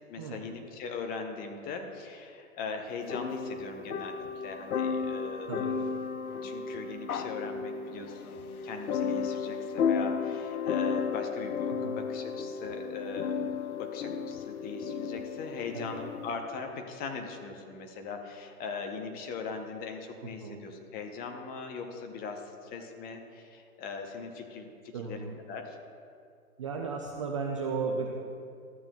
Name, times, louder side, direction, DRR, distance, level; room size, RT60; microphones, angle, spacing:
voice 1, 0.1-5.6 6.4-13.5 13.8-25.8, left 4 dB, 20° left, 4 dB, 0.7 m, -40 dB
sound 1, 3.1-16.3, left 6 dB, 75° left, 0.7 m, -33 dB
voice 2, 24.9-25.4 26.6-28.1, right 5 dB, 25° right, 0 dB, 0.3 m, -35 dB
13.5 x 8.7 x 2.3 m, 2.3 s
hypercardioid pair, 115°, 43 cm